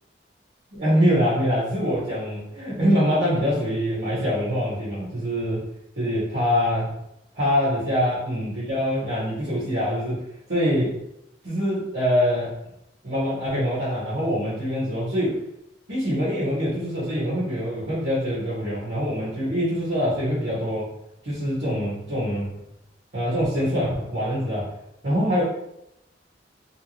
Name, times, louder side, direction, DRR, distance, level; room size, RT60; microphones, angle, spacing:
voice 1, 0.7-5.7 6.0-6.9 7.3-10.2 10.5-11.0 11.4-12.5 13.0-15.4 15.9-20.9 21.2-22.5 23.1-24.7 25.0-25.4, equal, 75° right, -10 dB, 1.4 m, -24 dB
3.5 x 2.8 x 3.1 m, 0.83 s
head